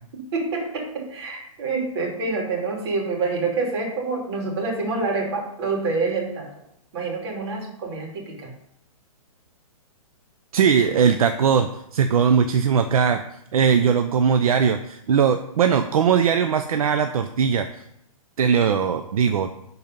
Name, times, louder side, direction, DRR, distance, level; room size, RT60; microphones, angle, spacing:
voice 1, 0.1-6.5 6.9-8.5, right 3 dB, 45° right, 1 dB, 2.7 m, -27 dB
voice 2, 10.5-13.2 13.5-17.7 18.4-19.5, right 7 dB, 70° right, 8 dB, 0.6 m, -20 dB
10.5 x 4.1 x 5.3 m, 0.79 s
hypercardioid pair, 155°, 19 cm